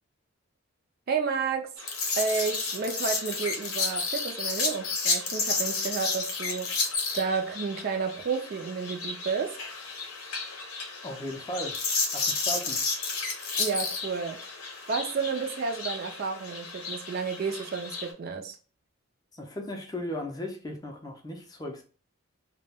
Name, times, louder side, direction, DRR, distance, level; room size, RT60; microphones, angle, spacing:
voice 1, 1.1-1.7 2.2-6.7 7.1-9.6 13.6-14.4 14.9-18.5, right 5 dB, 45° right, 0.3 m, -31 dB
sound 1, 1.8-18.1, left 4 dB, 90° left, 0.7 m, -32 dB
voice 2, 11.0-11.8 12.1-12.9 19.3-21.8, left 1 dB, 20° left, 0.4 m, -36 dB
2.2 x 2.1 x 3.3 m
head